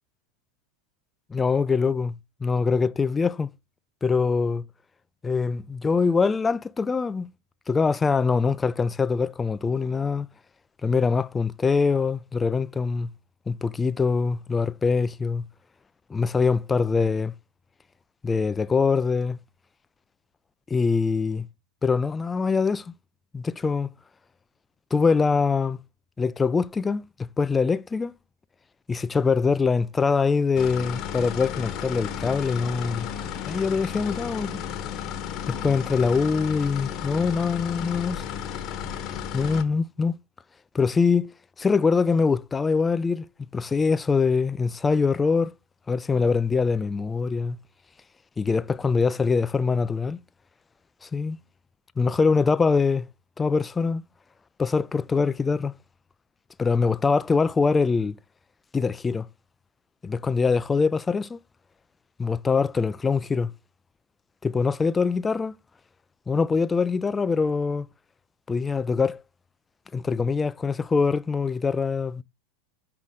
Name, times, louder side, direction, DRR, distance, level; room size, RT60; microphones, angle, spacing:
voice 1, 1.3-2.1 2.4-3.5 4.0-4.7 5.2-7.3 7.7-10.3 10.8-13.1 13.5-15.4 16.1-17.3 18.2-19.4 20.7-21.5 21.8-22.9 23.3-23.9 24.9-25.8 26.2-28.1 28.9-33.1 33.5-34.6 35.5-38.3 39.3-40.2 40.7-41.3 41.6-43.3 43.5-45.5 45.9-47.6 48.4-50.2 51.0-51.4 52.0-53.1 53.4-54.0 54.6-55.7 56.6-58.2 58.7-59.3 60.0-61.4 62.2-63.5 64.4-65.5 66.3-67.9 68.5-69.2 69.9-72.2, left 5 dB, 20° left, 0.4 m, -23 dB
sound 1, 30.5-39.6, left 9 dB, 45° left, 1.0 m, -33 dB
5.6 x 4.8 x 3.7 m
hypercardioid pair, 90°, 0 cm